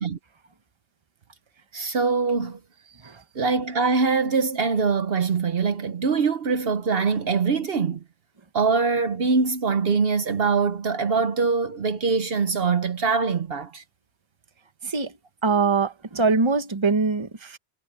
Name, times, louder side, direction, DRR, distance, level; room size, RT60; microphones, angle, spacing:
voice 1, 1.7-2.6 3.3-8.0 8.5-13.8, right 4 dB, 60° right, 1.1 m, -23 dB
voice 2, 15.4-17.6, right 4 dB, 25° right, 1.2 m, -23 dB
omnidirectional pair, 1.1 m